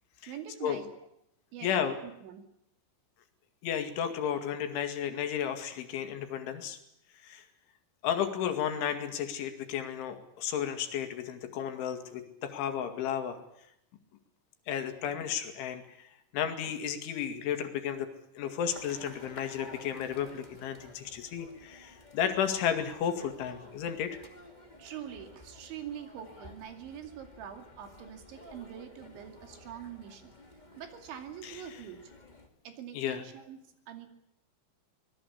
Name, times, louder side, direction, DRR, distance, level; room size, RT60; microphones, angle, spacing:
voice 1, 0.3-0.9 1.5-2.5 24.8-30.3 30.8-32.1 32.6-33.6 33.9-34.1, right 9 dB, 75° right, 6 dB, 4.8 m, -44 dB
voice 2, 1.6-2.0 3.6-6.8 7.2-7.5 8.0-13.4 14.7-16.1 16.3-18.1 18.4-24.2 31.4-31.5 32.9-33.2, left 8 dB, 80° left, 8 dB, 4.5 m, -33 dB
sound 1, 18.7-32.5, left 2 dB, 15° left, 1.6 m, -53 dB
25.0 x 19.5 x 8.3 m, 0.80 s
omnidirectional pair, 5.4 m